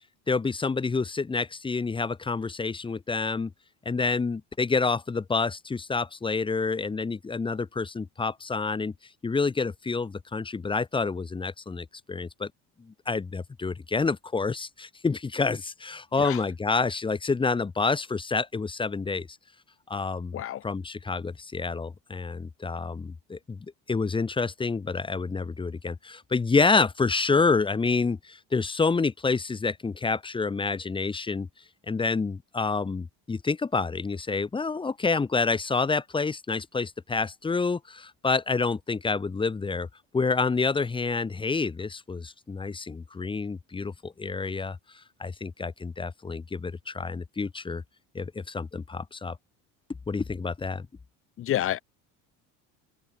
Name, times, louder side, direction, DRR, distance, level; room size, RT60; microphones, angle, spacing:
voice 1, 0.3-3.5 3.9-8.9 9.2-12.5 13.1-19.3 19.9-23.6 23.9-31.5 31.9-39.9 40.1-44.8 45.2-47.8 48.1-49.4 50.1-50.9, left 4 dB, 15° left, 2.4 m, -28 dB
voice 2, 20.3-20.6 51.4-51.8, left 12 dB, 35° left, 1.6 m, -28 dB
open air
cardioid pair, 165°, 36 cm